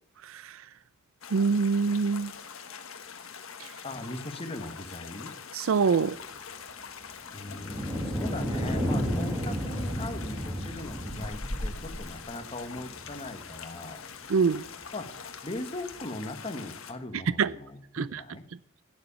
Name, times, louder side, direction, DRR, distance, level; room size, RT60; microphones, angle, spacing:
voice 1, 0.3-0.6 1.3-2.3 3.6-3.7 5.5-6.2 14.3-14.6 17.4-17.5 17.9-18.2, right 5 dB, 70° right, 0.4 m, -25 dB
sound 1, 1.2-16.9, left 6 dB, 70° left, 1.4 m, -44 dB
voice 2, 3.8-5.3 7.3-14.0 14.9-15.1 15.4-17.8 18.1-18.4, left 2 dB, 30° left, 1.4 m, -39 dB
sound 2, 7.4-13.8 14.4-14.5 15.9-16.0, equal, 15° right, 2.0 m, -33 dB
sound 3, 10.5-12.7, equal, 45° left, 3.3 m, -43 dB
11.5 x 9.8 x 7.0 m
head